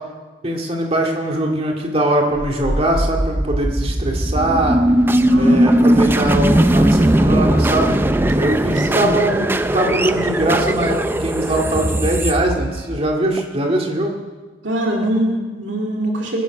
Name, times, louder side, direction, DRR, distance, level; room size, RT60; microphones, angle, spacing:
voice 1, 0.4-4.8 5.4-8.0 8.4-14.2, right 1 dB, 30° right, 1 dB, 2.3 m, -21 dB
sound 1, 2.4-13.4, right 1 dB, 10° right, 0.5 m, -18 dB
voice 2, 5.3-5.6 8.7-9.2 14.6-16.4, right 1 dB, 65° right, 0 dB, 2.5 m, -23 dB
22.5 x 10.0 x 6.1 m, 1.3 s
head